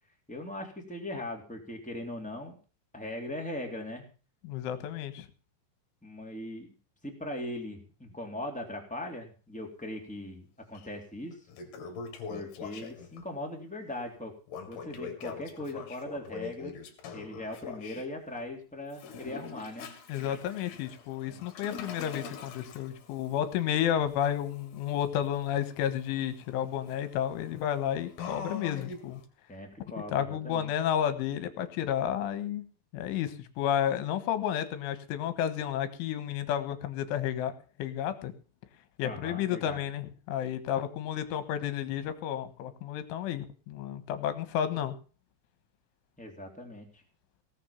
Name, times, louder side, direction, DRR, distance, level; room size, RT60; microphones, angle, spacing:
voice 1, 0.3-2.6 2.9-4.0 6.0-6.7 7.0-11.3 12.3-14.3 14.7-16.7 17.1-19.9 21.3-21.4 29.5-30.7 39.0-39.8 46.2-47.0, left 1 dB, ahead, 0 dB, 1.9 m, -39 dB
voice 2, 4.4-5.3 20.1-29.2 30.1-32.7 32.9-37.5 37.8-38.3 39.0-44.9, left 10 dB, 80° left, 11 dB, 3.7 m, -31 dB
Toilet flush, 10.8-10.9 11.3-13.2 14.5-18.1 18.9-29.2, left 5 dB, 60° left, 4.0 m, -44 dB
18.0 x 7.1 x 7.2 m, 0.38 s
omnidirectional pair, 5.7 m